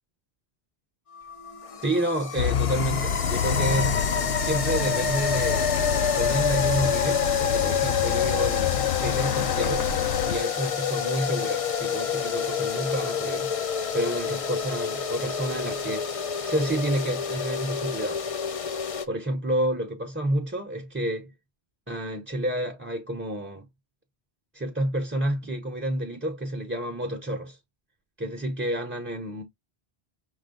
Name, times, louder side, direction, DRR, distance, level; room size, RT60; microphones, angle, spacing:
sound 1, 1.1-19.1, left 7 dB, 45° left, 0.5 m, -28 dB
voice 1, 1.8-4.0 4.4-9.9 10.2-13.5 13.9-16.1 16.4-18.2 19.1-21.3 21.9-23.7 24.5-27.6 28.2-29.4, right 1 dB, 15° right, 0.7 m, -29 dB
Traffic noise roadway noise, 2.4-10.4, left 7 dB, 70° left, 0.8 m, -28 dB
6.2 x 2.2 x 3.7 m
omnidirectional pair, 1.1 m